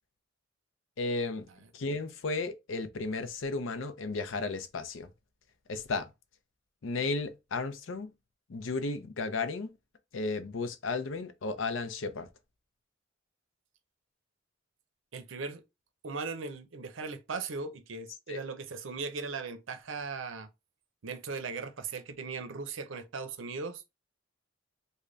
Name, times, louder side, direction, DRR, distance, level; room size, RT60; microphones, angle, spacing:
voice 1, 1.0-5.1 5.7-6.1 6.8-8.1 8.5-9.7 10.1-12.3 18.3-18.4, left 3 dB, 85° left, 0.6 m, -34 dB
voice 2, 15.1-15.6 16.0-20.5 21.0-23.9, right 4 dB, 80° right, 0.6 m, -38 dB
3.3 x 2.2 x 3.8 m
head